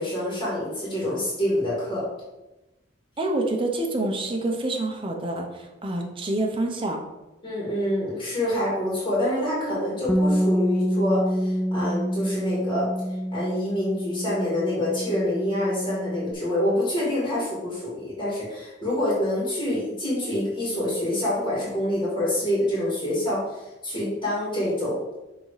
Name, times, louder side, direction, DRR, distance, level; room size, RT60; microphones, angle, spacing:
voice 1, 0.0-2.0 7.4-12.9 13.3-25.0, left 1 dB, 30° left, -7 dB, 2.5 m, -26 dB
voice 2, 3.2-7.0, right 2 dB, 30° right, 1 dB, 1.0 m, -27 dB
Bass guitar, 10.1-16.3, equal, 10° left, 0.4 m, -27 dB
6.8 x 3.8 x 5.0 m, 1.0 s
head